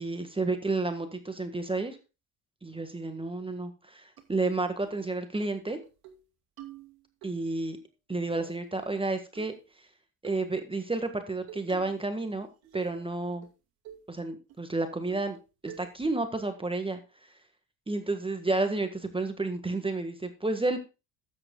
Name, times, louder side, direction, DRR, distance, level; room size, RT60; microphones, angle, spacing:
voice 1, 0.0-2.0 2.6-5.8 7.2-7.8 8.1-9.5 10.2-12.5 12.7-13.5 14.1-15.4 15.6-17.0 17.9-20.8, right 2 dB, 15° right, 7 dB, 1.6 m, -31 dB
sound 1, 4.2-4.3 4.8-5.0 5.4-5.5 5.8-6.2 6.6-7.3 8.4-9.0 9.4-9.7 10.2-10.5 11.5-12.1 12.4-13.1 13.4-13.5 13.9-14.1 14.5-14.6 15.1-15.4 15.7-16.1, right 10 dB, 60° right, 2.2 m, -48 dB
12.5 x 9.1 x 2.3 m, 0.29 s
hypercardioid pair, 65°, 41 cm